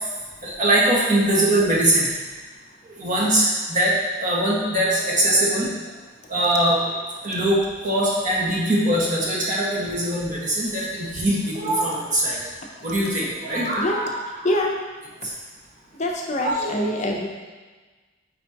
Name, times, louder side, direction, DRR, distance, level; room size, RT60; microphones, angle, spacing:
voice 1, 0.4-2.0 3.0-3.9 4.2-5.7 6.3-6.8 7.2-7.6 7.8-12.4 12.8-14.5 16.4-17.0, right 1 dB, 40° right, -5 dB, 1.7 m, -22 dB
voice 2, 13.3-14.0 14.4-14.8 15.9-17.3, left 1 dB, 40° left, 0 dB, 0.7 m, -25 dB
8.8 x 4.5 x 2.9 m, 1.3 s
head